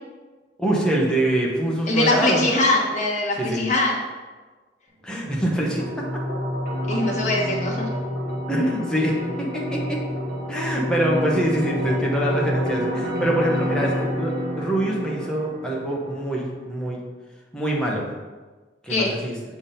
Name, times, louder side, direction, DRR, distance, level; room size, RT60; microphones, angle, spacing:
voice 1, 0.6-2.5 3.4-3.6 5.0-6.0 8.5-10.0 10.5-17.0 17.5-18.1 18.8-19.3, right 1 dB, 5° left, -3 dB, 1.1 m, -24 dB
voice 2, 1.9-4.0 6.9-7.9 18.9-19.1, left 2 dB, 45° left, -2 dB, 1.2 m, -22 dB
sound 1, 5.3-16.3, equal, 55° right, 1.3 m, -28 dB
6.9 x 3.6 x 4.3 m, 1.3 s
head